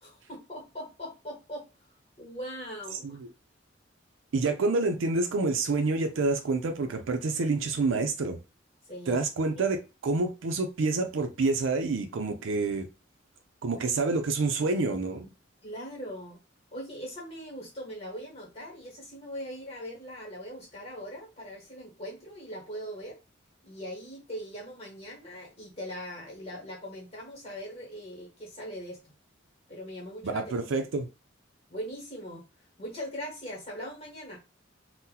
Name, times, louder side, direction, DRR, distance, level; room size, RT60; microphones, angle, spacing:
voice 1, 0.0-1.7 2.2-3.2 8.8-9.2 9.6-9.7 14.6-14.7 15.2-15.3 15.6-16.4 16.7-23.2 23.6-29.0 29.7-30.6 31.7-32.4 32.8-34.4, equal, 30° left, 1.2 m, -40 dB
voice 2, 4.3-8.4 9.1-12.9 13.6-15.3 30.2-31.0, right 3 dB, 90° right, 0.5 m, -28 dB
2.8 x 2.1 x 3.7 m
head